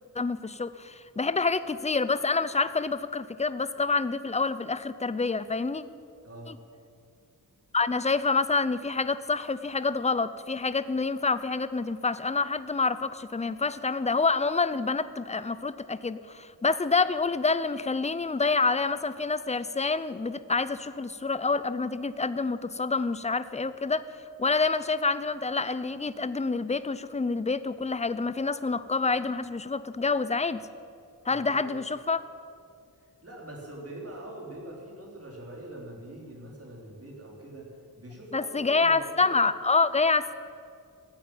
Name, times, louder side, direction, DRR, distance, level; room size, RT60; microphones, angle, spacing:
voice 1, 0.1-5.8 6.5-6.6 7.7-24.0 24.4-30.6 31.3-32.2 38.3-40.3, left 4 dB, 20° left, 14 dB, 0.6 m, -27 dB
voice 2, 6.2-6.6 31.3-31.7 33.0-37.7 38.0-39.3, right 1 dB, 40° right, -2 dB, 3.8 m, -43 dB
15.5 x 9.0 x 9.0 m, 2.3 s
wide cardioid pair, 100°, 38 cm